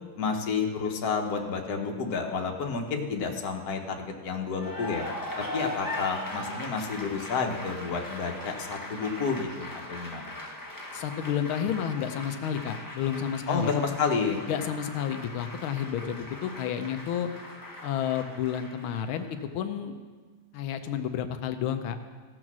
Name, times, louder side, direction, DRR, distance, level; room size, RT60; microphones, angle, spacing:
voice 1, 0.2-5.1 5.5-10.3 13.5-14.4, left 5 dB, 55° left, 2 dB, 1.5 m, -30 dB
Cheering / Applause, 4.5-19.4, left 1 dB, 15° left, 0.7 m, -40 dB
voice 2, 10.9-13.7 14.5-17.3 17.8-19.9 20.5-22.0, left 9 dB, 90° left, 8 dB, 1.5 m, -31 dB
15.5 x 6.3 x 6.1 m, 1.5 s
omnidirectional pair, 2.2 m